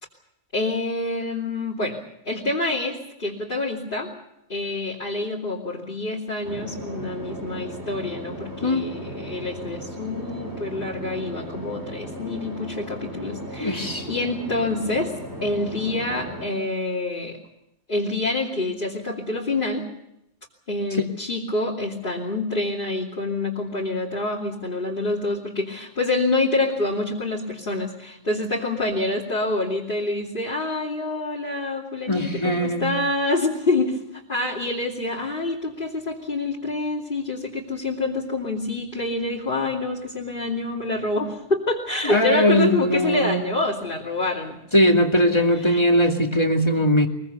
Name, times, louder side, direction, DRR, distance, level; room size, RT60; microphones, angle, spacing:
voice 1, 0.5-2.0 2.3-4.1 4.5-15.1 15.4-17.4 17.9-19.8 20.7-44.6 45.5-45.8, left 2 dB, 45° left, -5 dB, 3.0 m, -27 dB
sound 1, 6.4-16.5, equal, 60° right, 4.6 m, -36 dB
voice 2, 13.6-14.1 32.1-32.9 42.1-43.4 44.7-47.1, equal, 20° left, 3 dB, 2.4 m, -20 dB
23.0 x 22.5 x 6.9 m, 0.83 s
omnidirectional pair, 1.3 m